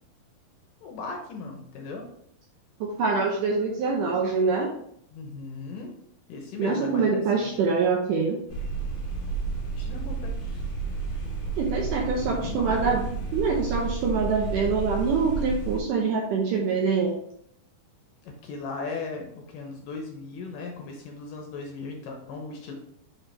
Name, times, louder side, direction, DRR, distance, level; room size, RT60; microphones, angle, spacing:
voice 1, 0.8-2.1 5.1-5.9 6.3-7.5 9.8-10.3 12.2-13.0 18.2-22.7, left 4 dB, 75° left, 2 dB, 2.2 m, -37 dB
voice 2, 2.8-4.7 6.6-8.4 11.6-13.0 13.3-17.1, right 4 dB, 75° right, 0 dB, 1.9 m, -25 dB
sound 1, 8.5-15.8, right 4 dB, 55° left, 1.4 m, -31 dB
5.9 x 5.0 x 3.3 m, 0.70 s
omnidirectional pair, 4.4 m